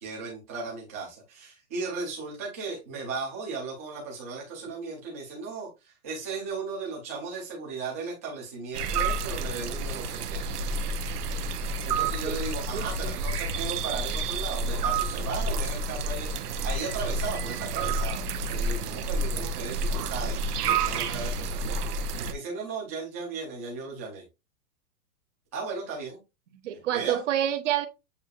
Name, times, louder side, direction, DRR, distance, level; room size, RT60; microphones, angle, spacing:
voice 1, 0.0-10.4 11.6-16.3 16.6-18.2 18.5-21.8 22.1-24.2 25.5-26.2 26.9-27.2, right 4 dB, 10° right, 0.6 m, -36 dB
sound 1, 8.7-22.3, right 3 dB, 85° right, 0.8 m, -29 dB
voice 2, 12.7-13.1 26.6-27.9, right 11 dB, 50° right, 0.8 m, -28 dB
8.1 x 2.7 x 2.4 m
supercardioid pair, 180°, 45 cm